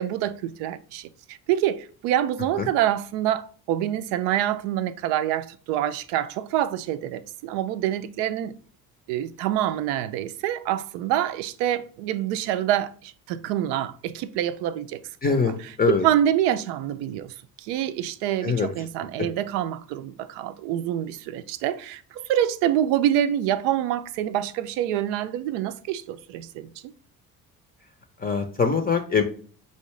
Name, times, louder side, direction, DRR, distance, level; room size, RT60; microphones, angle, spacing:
voice 1, 0.0-8.5 9.1-15.0 15.3-26.7, right 11 dB, 65° right, 0.5 m, -26 dB
voice 2, 15.2-16.1 18.4-18.7 28.2-29.2, left 5 dB, 20° left, 0.6 m, -23 dB
5.6 x 2.7 x 3.1 m
hypercardioid pair, 55°, 44 cm